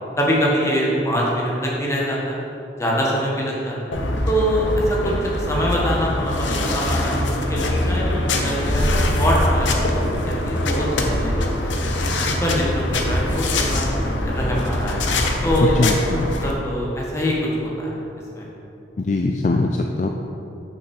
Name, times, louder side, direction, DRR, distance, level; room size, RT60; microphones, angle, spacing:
voice 1, 0.2-2.4 2.8-3.8 4.3-8.0 8.4-11.7 12.2-15.0 15.4-15.9 16.4-17.4 17.6-17.9 18.3-18.5, equal, 15° left, -4 dB, 1.5 m, -24 dB
sound 1, 3.9-16.5, left 1 dB, 85° left, 0.9 m, -23 dB
voice 2, 15.6-16.3 19.0-20.1, left 2 dB, 40° left, 3 dB, 0.4 m, -21 dB
6.4 x 5.9 x 6.5 m, 2.9 s
head